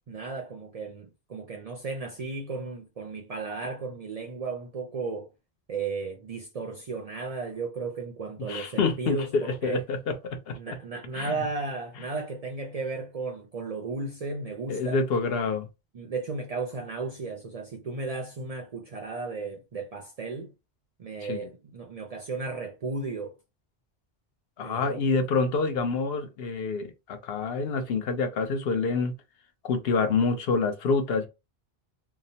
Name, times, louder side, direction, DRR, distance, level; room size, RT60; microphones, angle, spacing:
voice 1, 0.1-5.3 5.7-9.8 10.5-15.0 15.9-20.5 21.0-23.4 24.6-25.0, right 4 dB, 55° right, 0.4 m, -34 dB
voice 2, 8.5-10.6 11.1-11.4 14.7-15.7 21.2-21.5 24.6-29.1 29.6-31.3, left 4 dB, 70° left, 0.8 m, -27 dB
2.8 x 2.0 x 2.6 m
omnidirectional pair, 1.1 m